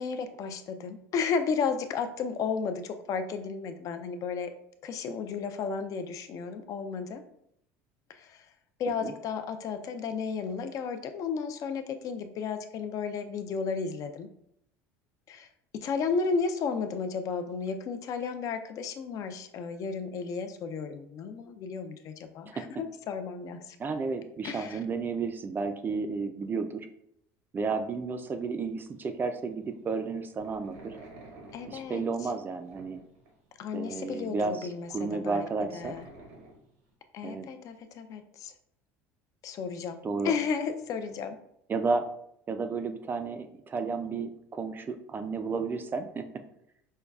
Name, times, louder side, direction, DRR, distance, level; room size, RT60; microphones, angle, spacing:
voice 1, 0.0-4.5 4.8-7.2 8.1-8.5 8.8-14.3 15.3-15.5 15.7-23.8 24.4-24.8 31.5-32.3 33.6-36.1 37.1-38.5 39.4-41.4, left 5 dB, 50° left, 8 dB, 0.4 m, -33 dB
voice 2, 23.8-26.9 27.5-30.9 31.7-33.0 33.7-36.0 37.2-37.5 40.0-40.3 41.7-42.1 42.5-46.2, right 4 dB, 25° right, 7 dB, 0.3 m, -32 dB
sound 1, 28.2-28.5 28.8-32.2 32.6-33.9 34.2-36.9, right 2 dB, 85° right, 1.0 m, -51 dB
5.3 x 2.2 x 2.3 m, 0.74 s
supercardioid pair, 100°, 7 cm